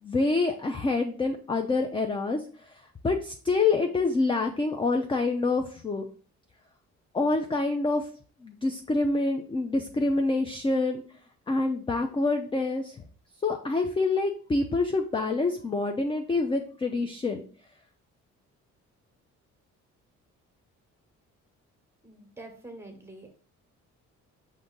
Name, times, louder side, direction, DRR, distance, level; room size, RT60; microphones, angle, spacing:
voice 1, 0.0-6.0 7.1-8.1 8.4-11.0 11.5-13.0 13.4-17.4, left 3 dB, 15° left, 5 dB, 0.4 m, -27 dB
voice 2, 22.0-23.3, right 2 dB, 10° right, 4 dB, 1.1 m, -46 dB
5.2 x 2.6 x 3.7 m, 0.42 s
cardioid pair, 90°, 30 cm